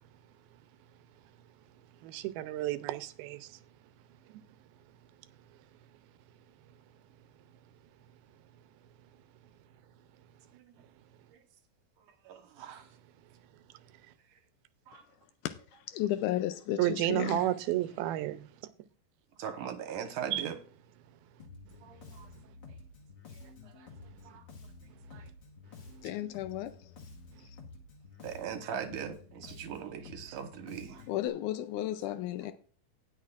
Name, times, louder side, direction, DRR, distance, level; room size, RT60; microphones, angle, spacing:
voice 1, 2.0-3.5 16.8-18.4 20.3-20.4, right 14 dB, 85° right, 2.6 m, -31 dB
voice 2, 12.2-12.9 14.3-14.4 14.9-15.0 19.4-20.6 21.8-22.3 22.7-22.8 23.3-23.9 24.2-24.4 25.1-25.3 28.2-31.1, right 8 dB, 65° right, 2.5 m, -41 dB
voice 3, 15.9-17.5 26.0-26.7 31.1-32.5, left 13 dB, 85° left, 1.7 m, -33 dB
Bass guitar, 21.4-31.3, left 3 dB, 45° left, 1.6 m, -51 dB
19.0 x 6.6 x 2.5 m
omnidirectional pair, 4.3 m